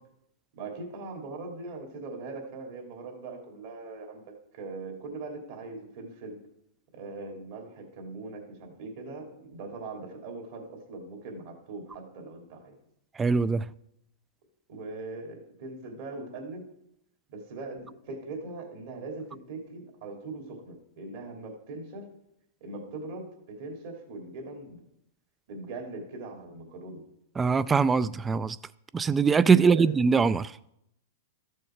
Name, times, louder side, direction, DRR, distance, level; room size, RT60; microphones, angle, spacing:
voice 1, 0.5-6.4 6.9-12.8 14.7-16.7 17.3-22.1 22.6-24.8 25.5-27.0 29.6-29.9, right 3 dB, 60° right, 2.8 m, -41 dB
voice 2, 13.2-13.6 27.4-28.6 28.9-30.5, right 5 dB, 15° right, 0.3 m, -22 dB
13.5 x 6.5 x 4.5 m
hypercardioid pair, 125°, 0 cm